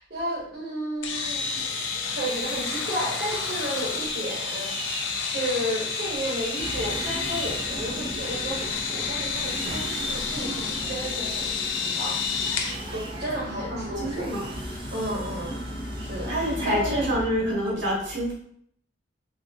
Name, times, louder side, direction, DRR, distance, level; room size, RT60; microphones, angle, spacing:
voice 1, 0.0-12.2 12.9-14.3 14.9-15.5 16.0-16.3 16.6-17.1, right 1 dB, 50° right, -5 dB, 1.0 m, -33 dB
sound 1, 1.0-12.8, left 5 dB, 85° left, 0.5 m, -30 dB
Sawing, 1.1-17.5, right 2 dB, 25° right, 0.5 m, -40 dB
sound 2, 6.6-17.3, equal, 25° left, 0.8 m, -37 dB
voice 2, 13.7-14.5 16.3-18.3, equal, 75° right, -4 dB, 1.0 m, -27 dB
3.3 x 2.5 x 2.7 m, 0.65 s
head